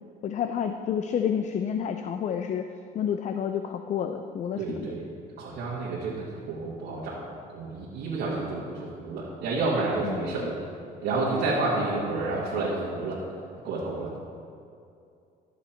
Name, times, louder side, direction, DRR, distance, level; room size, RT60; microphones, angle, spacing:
voice 1, 0.2-2.7 2.9-4.9 10.0-10.5, left 8 dB, 45° left, 7 dB, 0.5 m, -29 dB
voice 2, 4.6-5.0 5.4-7.2 7.5-10.6 11.0-13.2 13.6-14.2, right 3 dB, 80° right, -7 dB, 1.9 m, -30 dB
13.0 x 7.1 x 4.4 m, 2.5 s
cardioid pair, 110°, 17 cm